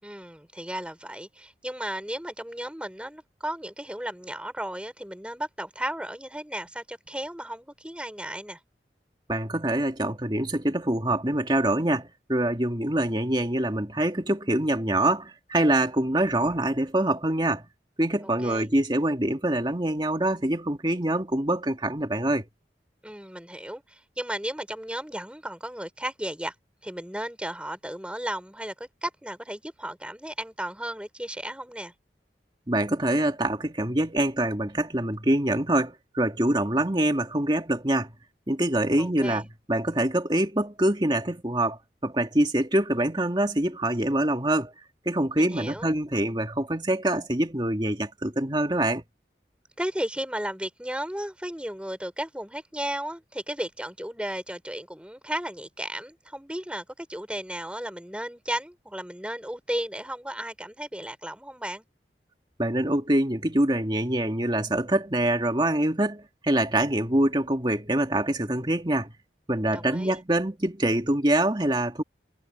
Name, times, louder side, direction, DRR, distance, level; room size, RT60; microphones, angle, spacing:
voice 1, 0.0-8.6 18.2-18.7 23.0-26.5 26.8-31.9 39.0-39.4 45.4-45.9 49.8-61.8 69.7-70.2, right 1 dB, 5° right, 4.9 m, -34 dB
voice 2, 9.3-17.6 18.0-22.4 32.7-38.1 38.5-44.7 45.1-49.0 62.6-69.1 69.5-72.0, right 1 dB, 25° right, 2.2 m, -25 dB
head